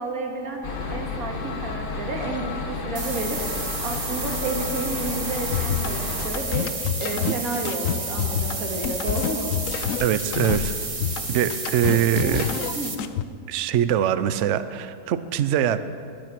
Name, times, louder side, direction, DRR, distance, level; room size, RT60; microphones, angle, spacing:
voice 1, 0.0-3.4 3.8-6.7 7.0-9.5 12.1-12.4 12.7-12.9, right 2 dB, 55° right, 0 dB, 2.4 m, -31 dB
sound 1, 0.6-6.3, left 4 dB, 35° left, 1.2 m, -31 dB
sound 2, 2.9-12.9, right 3 dB, 25° right, 0.8 m, -32 dB
sound 3, 5.5-13.2, left 10 dB, 70° left, 0.7 m, -28 dB
voice 2, 10.0-10.7 11.3-12.5 13.5-15.8, right 10 dB, 80° right, 12 dB, 0.6 m, -23 dB
21.0 x 9.0 x 6.0 m, 2.4 s
omnidirectional pair, 1.9 m